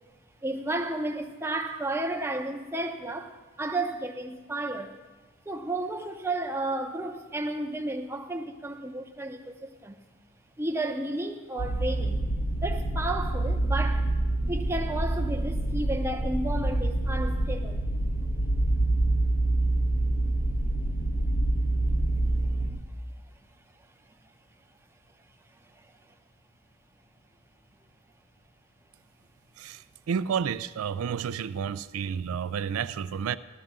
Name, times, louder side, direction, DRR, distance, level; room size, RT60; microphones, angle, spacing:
voice 1, 0.4-5.0 5.5-10.0 10.6-12.2 12.6-14.1 14.5-17.9, right 2 dB, 10° right, 0.6 m, -32 dB
sound 1, 11.6-22.7, right 1 dB, 60° left, 1.5 m, -26 dB
voice 2, 30.1-33.4, right 7 dB, 85° right, 0.3 m, -30 dB
13.5 x 13.0 x 3.6 m
head